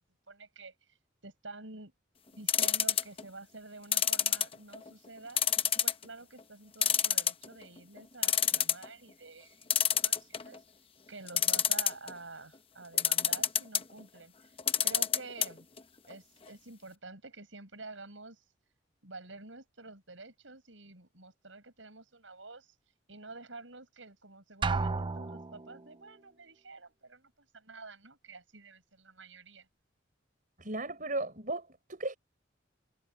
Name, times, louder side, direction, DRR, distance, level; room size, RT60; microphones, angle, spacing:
voice 1, 0.3-1.0 1.2-1.9 2.3-5.4 5.8-10.6 11.1-14.6 14.8-15.7 16.1-18.4 19.0-22.7 23.1-29.7, right 3 dB, 80° right, 6.5 m, -49 dB
sound 1, 2.5-3.2 3.9-4.9 5.4-6.0 6.4-6.5 6.8-7.6 8.0-8.8 9.7-10.6 11.3-12.1 13.0-13.8 14.6-15.5 15.8-15.9 16.1-16.2, left 9 dB, 30° left, 0.9 m, -27 dB
Drum, 24.6-25.8, right 4 dB, 25° right, 0.4 m, -32 dB
voice 2, 30.6-32.2, right 2 dB, 45° right, 5.6 m, -36 dB
head